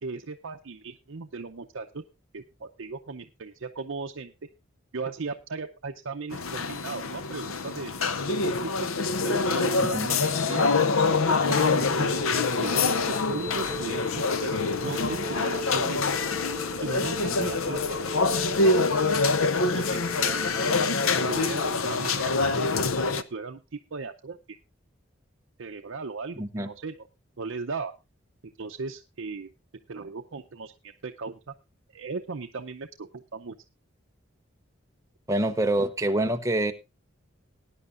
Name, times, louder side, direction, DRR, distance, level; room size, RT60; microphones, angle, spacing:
voice 1, 0.0-2.0 2.3-4.3 4.9-8.9 9.2-10.7 11.5-14.5 14.8-16.3 16.8-18.7 19.7-20.8 21.2-22.7 23.0-24.4 25.6-27.1 27.4-27.9 28.6-29.5 29.9-31.5 31.9-33.6, right 4 dB, 75° right, 4 dB, 0.6 m, -37 dB
sound 1, 6.3-23.2, left 4 dB, 85° left, 0.7 m, -25 dB
sound 2, 11.4-21.7, left 1 dB, 30° right, 1.4 m, -38 dB
voice 2, 26.4-26.7 35.3-36.7, right 1 dB, 15° right, 6 dB, 0.8 m, -26 dB
19.5 x 9.8 x 2.5 m, 0.25 s
head